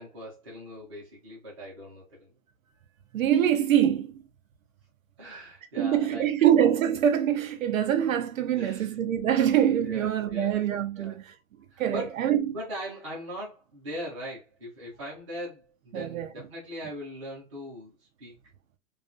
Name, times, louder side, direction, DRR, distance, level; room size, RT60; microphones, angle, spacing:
voice 1, 0.0-2.3 5.2-6.5 8.5-9.0 9.8-10.6 10.9-11.2 11.7-12.2 12.5-18.3, equal, 25° right, 0.6 m, -40 dB
voice 2, 3.1-4.2 5.8-11.3 11.8-12.5 15.9-16.3, right 10 dB, 85° right, 0.5 m, -24 dB
2.3 x 2.3 x 2.5 m
hypercardioid pair, 180°, 40 cm